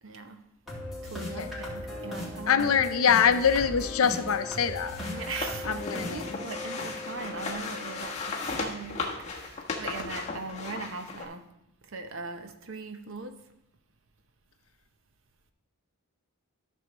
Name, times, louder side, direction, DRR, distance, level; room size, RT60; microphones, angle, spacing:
voice 1, 0.0-0.4 1.0-2.8 5.1-11.4 11.8-13.4, right 3 dB, 60° right, 8 dB, 0.7 m, -40 dB
sound 1, 0.7-8.6, left 1 dB, ahead, 2.1 m, -38 dB
voice 2, 2.5-5.0 5.7-6.4, left 7 dB, 70° left, 10 dB, 0.5 m, -24 dB
sound 2, 4.0-11.2, left 4 dB, 30° left, 1.1 m, -37 dB
13.5 x 6.2 x 3.0 m, 0.84 s
head